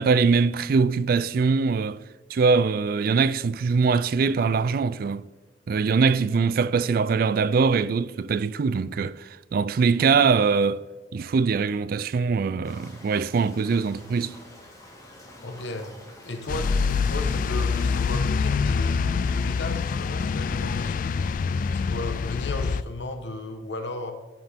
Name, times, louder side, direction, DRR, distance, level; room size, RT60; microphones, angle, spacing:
voice 1, 0.0-2.0 2.3-5.2 5.7-10.8 11.1-14.4, right 5 dB, 55° right, 0.3 m, -22 dB
sound 1, 12.6-18.2, left 1 dB, 20° left, 2.0 m, -47 dB
voice 2, 15.4-15.9 16.2-24.1, left 2 dB, 80° left, 1.1 m, -35 dB
sound 2, 16.5-22.8, left 5 dB, 50° left, 0.3 m, -25 dB
12.0 x 5.8 x 3.5 m
head